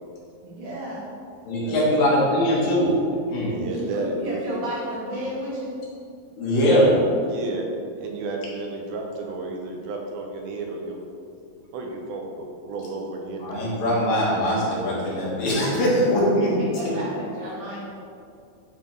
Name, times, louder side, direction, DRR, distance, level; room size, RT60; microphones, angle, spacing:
voice 1, 0.4-1.1 1.6-1.8 3.7-5.8 7.4-7.5 16.0-17.8, right 1 dB, 60° right, -7 dB, 3.1 m, -32 dB
voice 2, 1.4-3.0 3.3-3.6 6.4-7.0 13.4-16.6, equal, 70° left, -6 dB, 3.2 m, -21 dB
voice 3, 3.4-4.6 7.3-7.7 8.0-11.0 11.7-13.4, right 3 dB, 85° right, 1 dB, 2.7 m, -32 dB
10.5 x 4.5 x 3.5 m, 2.4 s
omnidirectional pair, 4.4 m